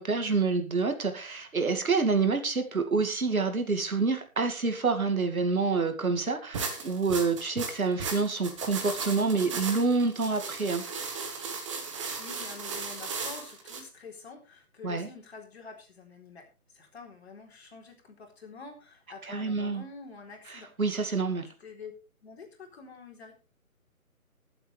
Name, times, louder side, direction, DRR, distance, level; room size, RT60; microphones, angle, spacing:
voice 1, 0.0-10.8 14.8-15.1 19.3-19.8 20.5-21.5, right 4 dB, 70° right, 7 dB, 2.5 m, -27 dB
sound 1, 6.5-13.8, right 4 dB, 20° right, 1.5 m, -36 dB
voice 2, 11.8-20.7 21.6-21.9 22.2-23.3, left 4 dB, 45° left, 2 dB, 4.0 m, -47 dB
21.5 x 7.9 x 3.4 m, 0.31 s
figure-of-eight pair, 155°, 43 cm